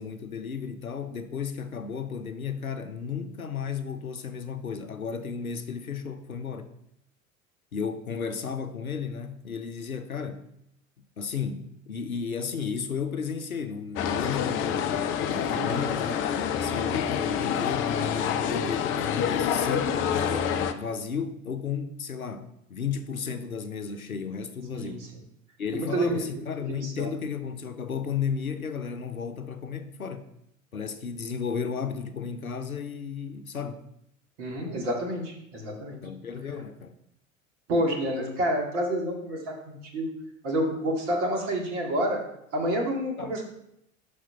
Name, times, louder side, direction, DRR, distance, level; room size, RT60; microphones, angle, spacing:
voice 1, 0.0-6.7 7.7-10.4 11.2-25.0 25.6-30.3 30.7-33.8 36.0-36.9 43.2-43.3, left 6 dB, 90° left, 0.7 m, -34 dB
sound 1, 14.0-20.7, left 8 dB, 30° left, 0.5 m, -27 dB
voice 2, 15.6-15.9 24.7-25.0 25.7-27.1 34.4-36.0 37.7-40.1 40.4-42.2 42.5-43.4, right 1 dB, 60° right, 2.2 m, -29 dB
6.0 x 4.9 x 5.6 m
figure-of-eight pair, 80°, 41 cm